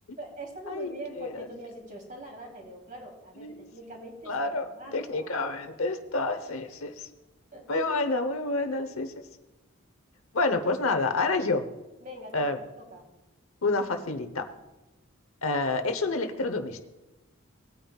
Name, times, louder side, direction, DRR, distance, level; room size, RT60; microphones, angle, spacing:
voice 1, 0.2-5.3 7.5-8.0 12.0-13.1, right 1 dB, 40° right, 0 dB, 3.2 m, -43 dB
voice 2, 4.3-4.7 4.9-7.1 7.7-9.1 10.3-11.6 12.3-12.6 13.6-14.5 15.4-16.8, left 3 dB, 80° left, 8 dB, 0.9 m, -28 dB
19.0 x 9.2 x 2.4 m, 1.1 s
head